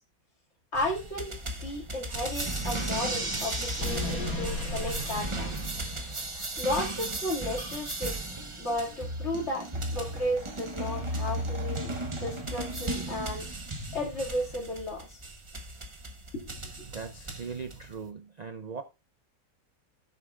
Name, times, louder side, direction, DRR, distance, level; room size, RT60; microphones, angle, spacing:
voice 1, 0.7-1.3 1.6-5.5 6.3-8.2 8.6-13.5 13.9-15.2 16.3-16.5, left 1 dB, 50° left, 2.6 m, -34 dB
sound 1, 0.7-18.1, right 2 dB, 25° right, 0.9 m, -35 dB
sound 2, 2.2-6.6, left 1 dB, 80° left, 2.7 m, -37 dB
voice 2, 16.8-18.8, right 5 dB, 85° right, 0.3 m, -39 dB
16.0 x 6.6 x 2.4 m
omnidirectional pair, 1.5 m